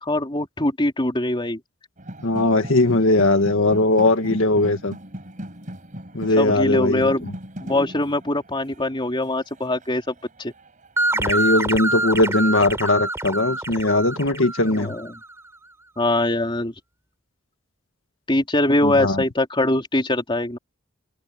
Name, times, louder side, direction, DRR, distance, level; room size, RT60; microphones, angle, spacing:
voice 1, 0.0-1.6 6.4-7.3 7.6-10.5 14.7-15.2 16.0-16.7 18.3-20.6, left 1 dB, 25° left, 3.1 m, -23 dB
sound 1, 2.0-10.9, equal, 40° right, 4.5 m, -39 dB
voice 2, 2.2-5.0 6.1-7.1 11.1-14.9 18.8-19.2, left 2 dB, 80° left, 1.8 m, -19 dB
sound 2, 11.0-15.3, right 2 dB, 15° right, 4.2 m, -26 dB
head